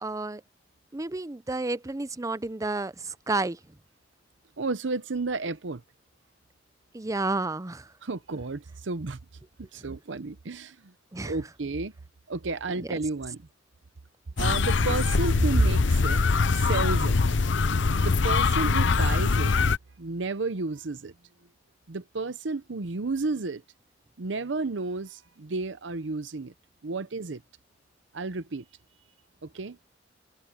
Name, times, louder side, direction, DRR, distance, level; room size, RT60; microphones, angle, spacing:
voice 1, 0.0-0.4 0.9-2.9 3.3-3.6 6.9-7.8 11.1-11.3 12.8-12.9 18.6-19.0, right 2 dB, 20° right, 0.5 m, -31 dB
voice 2, 4.6-5.8 8.0-9.2 9.7-10.8 11.2-11.9 12.3-13.4 14.4-16.2 16.5-17.2 18.0-19.5 20.0-21.1 21.9-23.6 24.2-26.5 26.8-27.4 28.1-28.6 29.5-29.8, right 3 dB, 70° right, 0.8 m, -31 dB
sound 1, 14.4-19.8, left 4 dB, 70° left, 0.7 m, -23 dB
head